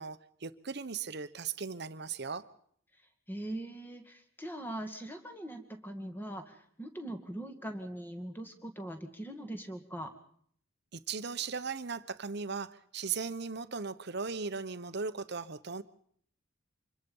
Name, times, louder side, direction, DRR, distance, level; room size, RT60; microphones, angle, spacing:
voice 1, 0.0-2.4 10.9-15.8, right 5 dB, 55° right, 13 dB, 1.0 m, -37 dB
voice 2, 3.3-10.1, right 1 dB, 10° left, 7 dB, 2.1 m, -41 dB
26.0 x 22.0 x 5.5 m, 0.62 s
head